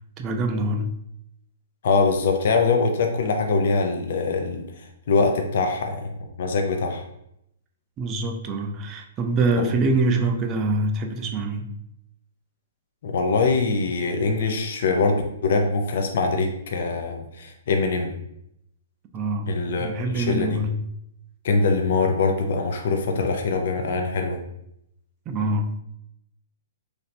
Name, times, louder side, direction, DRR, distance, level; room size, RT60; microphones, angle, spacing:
voice 1, 0.2-0.9 8.0-11.7 19.1-20.8 25.3-25.8, right 2 dB, 20° right, 4 dB, 0.4 m, -25 dB
voice 2, 1.8-4.7 5.1-6.1 6.4-7.0 9.6-9.7 13.0-18.1 19.5-20.6 21.4-24.4, left 4 dB, 60° left, 3 dB, 0.5 m, -23 dB
3.2 x 2.6 x 4.2 m, 0.78 s
hypercardioid pair, 160°, 0 cm